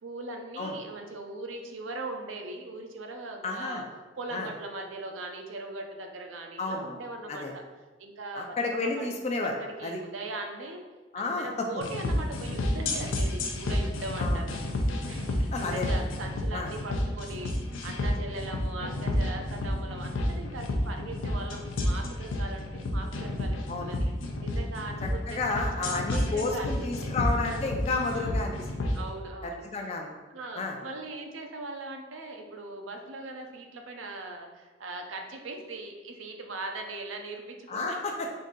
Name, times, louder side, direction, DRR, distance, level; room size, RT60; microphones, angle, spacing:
voice 1, 0.0-3.9 4.2-7.6 8.0-9.1 9.6-10.8 11.2-17.6 17.8-24.1 24.4-26.7 27.0-27.1 27.9-28.4 28.9-29.7 30.3-38.2, right 2 dB, 85° right, 3 dB, 0.5 m, -40 dB
voice 2, 3.4-3.8 4.3-4.5 6.6-6.9 7.3-7.5 8.4-10.0 11.1-11.7 14.2-14.4 15.5-15.9 16.5-16.7 23.7-23.9 25.3-28.7 29.4-30.1 30.6-30.8 37.7-38.3, left 3 dB, 35° left, 2 dB, 0.4 m, -31 dB
sound 1, 11.8-29.0, left 1 dB, 85° left, 0.5 m, -30 dB
3.8 x 2.7 x 3.7 m, 1.3 s
head